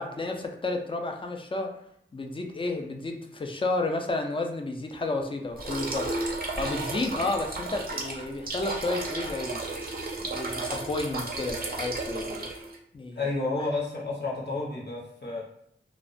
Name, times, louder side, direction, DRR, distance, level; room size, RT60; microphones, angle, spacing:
voice 1, 0.0-1.7 2.1-6.1 6.6-9.6 10.2-12.5 12.9-13.2, left 2 dB, 25° left, 3 dB, 0.3 m, -31 dB
sound 1, 5.6-12.8, right 2 dB, 45° right, 0.5 m, -33 dB
voice 2, 13.2-15.4, left 3 dB, 55° left, -4 dB, 0.8 m, -31 dB
2.3 x 2.1 x 2.5 m, 0.70 s
wide cardioid pair, 60°, 21 cm